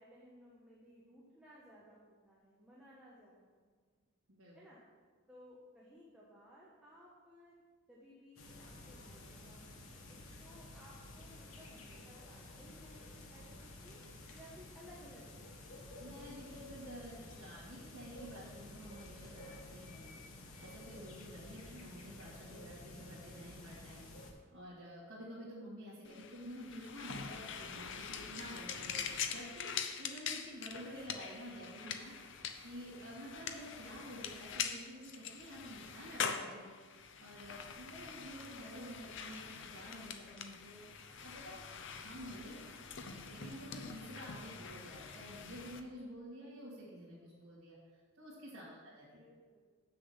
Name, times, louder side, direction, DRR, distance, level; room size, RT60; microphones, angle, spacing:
voice 1, 0.0-3.9 4.5-4.8 5.3-7.5 7.9-14.0 14.3-15.6 29.2-29.3 29.6-29.7 42.6-42.9 48.5-48.8 49.2-49.6, equal, 5° right, -7 dB, 1.3 m, -59 dB
sound 1, 8.4-24.3, left 2 dB, 90° left, 1.4 m, -52 dB
voice 2, 16.0-24.0 24.5-29.0 29.3-29.7 30.0-36.7 37.2-40.8 41.2-41.6 41.9-42.5 42.9-49.2, equal, 70° right, -8 dB, 2.2 m, -50 dB
sound 2, 26.0-45.8, left 6 dB, 60° left, 0.7 m, -44 dB
7.9 x 6.6 x 5.7 m, 1.5 s
head